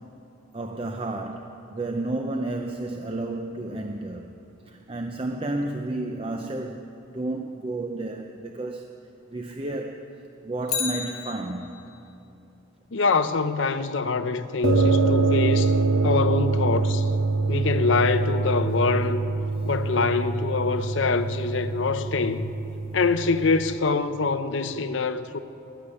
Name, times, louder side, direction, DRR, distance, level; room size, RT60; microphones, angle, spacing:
voice 1, 0.5-4.3 4.7-6.9 7.1-8.9 9.3-10.1 10.4-11.9 16.1-16.2, right 2 dB, 25° right, 0.5 m, -31 dB
Bicycle, 10.6-12.0 20.3-20.4, left 7 dB, 90° left, 1.1 m, -32 dB
voice 2, 12.9-15.7 16.0-17.1 17.5-19.2 19.6-22.5 22.9-25.4, left 4 dB, 65° left, 0.6 m, -24 dB
sound 1, 14.6-23.8, right 3 dB, 70° right, 1.0 m, -25 dB
16.5 x 7.0 x 9.7 m
head